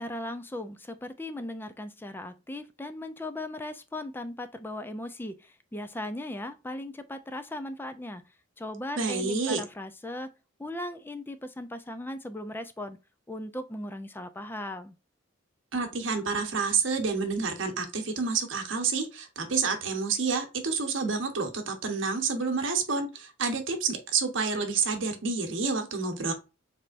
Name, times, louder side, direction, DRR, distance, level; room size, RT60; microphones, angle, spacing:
voice 1, 0.0-8.3 8.6-10.3 10.6-13.0 13.3-15.0, left 1 dB, 10° left, 0.3 m, -38 dB
voice 2, 9.0-9.6 15.7-26.3, right 4 dB, 65° right, 1.0 m, -29 dB
4.3 x 3.3 x 2.5 m
head